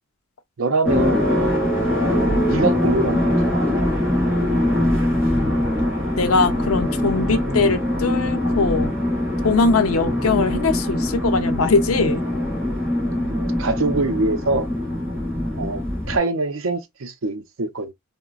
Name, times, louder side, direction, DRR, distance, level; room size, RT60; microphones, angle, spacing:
voice 1, 0.6-1.3 2.0-3.9 13.1-14.7 15.6-15.8 16.1-17.9, right 3 dB, 70° right, 0.6 m, -24 dB
sound 1, 0.8-16.2, left 1 dB, 10° right, 1.2 m, -22 dB
voice 2, 6.2-8.9 9.4-12.2, left 4 dB, 90° left, 0.6 m, -21 dB
3.8 x 2.1 x 2.3 m
head